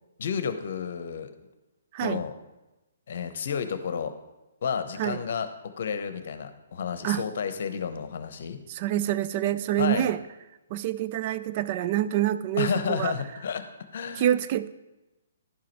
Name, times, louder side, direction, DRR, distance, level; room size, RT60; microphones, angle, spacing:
voice 1, 0.2-1.3 2.0-2.3 3.1-4.1 4.6-8.6 9.8-10.1 12.6-13.7 13.9-14.3, left 7 dB, 60° left, 10 dB, 0.8 m, -31 dB
voice 2, 8.7-10.2 10.7-13.2 14.2-14.7, right 12 dB, 40° right, 13 dB, 0.4 m, -26 dB
11.0 x 4.9 x 4.6 m, 1.0 s
hypercardioid pair, 135°, 0 cm